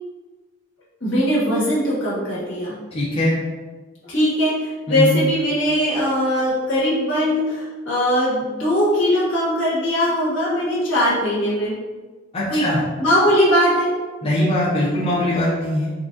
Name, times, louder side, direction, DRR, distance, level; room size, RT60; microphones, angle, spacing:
voice 1, 1.0-2.8 4.0-11.8 12.5-12.6 13.0-13.9 14.8-14.9, equal, 70° left, -8 dB, 1.2 m, -20 dB
voice 2, 2.9-3.3 4.9-5.1 12.3-12.8 14.2-15.9, left 1 dB, 30° left, -9 dB, 0.5 m, -21 dB
3.7 x 2.3 x 2.5 m, 1.3 s
head